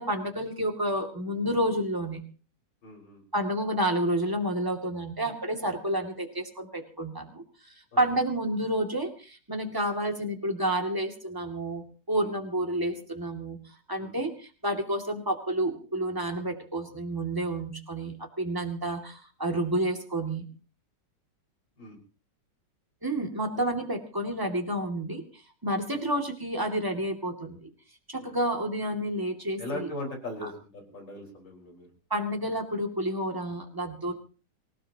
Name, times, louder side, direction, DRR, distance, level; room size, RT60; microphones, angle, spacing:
voice 1, 0.0-2.2 3.3-7.4 8.0-13.6 13.9-20.4 23.0-25.2 25.6-27.7 28.1-29.9 30.4-30.5 32.1-34.1, right 1 dB, 10° right, 3 dB, 2.4 m, -30 dB
voice 2, 2.8-3.2 7.9-8.1 12.1-12.3 14.0-14.2 21.8-22.0 23.5-23.7 25.9-26.0 28.2-28.4 29.6-31.9 34.0-34.1, left 1 dB, 85° left, 0 dB, 5.7 m, -39 dB
25.5 x 17.0 x 3.0 m, 0.37 s
omnidirectional pair, 1.9 m